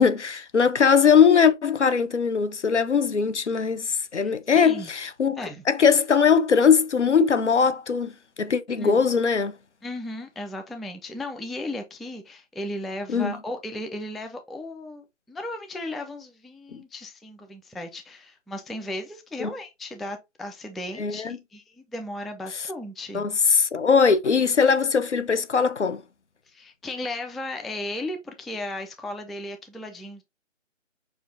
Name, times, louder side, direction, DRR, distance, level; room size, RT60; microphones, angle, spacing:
voice 1, 0.0-5.4 5.7-8.1 8.4-9.6 13.1-13.3 16.7-16.8 19.4-19.5 21.0-21.4 22.5-22.7 23.1-26.0, left 6 dB, 65° left, 0.7 m, -20 dB
voice 2, 4.2-4.9 5.4-5.6 8.7-9.0 9.8-23.3 26.5-30.2, left 1 dB, ahead, 0.3 m, -35 dB
6.4 x 2.5 x 2.6 m
figure-of-eight pair, 175°, 38 cm